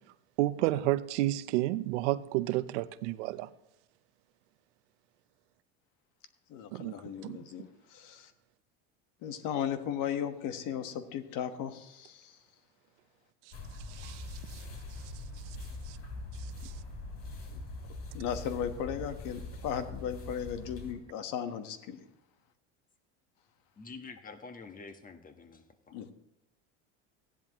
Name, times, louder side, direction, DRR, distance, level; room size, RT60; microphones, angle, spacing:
voice 1, 0.4-3.5 6.7-6.9 7.2-7.4 13.9-14.6 15.9-16.0 16.6-16.7, right 16 dB, 85° right, 0.6 m, -31 dB
voice 2, 6.5-8.3 9.2-12.4 17.5-17.6 18.1-22.0 25.9-26.1, left 9 dB, 65° left, 1.3 m, -36 dB
sound 1, 13.5-20.9, left 2 dB, 45° left, 3.6 m, -42 dB
voice 3, 23.8-25.6, left 4 dB, 25° left, 1.2 m, -47 dB
15.0 x 10.5 x 3.0 m
supercardioid pair, 105°, 35 cm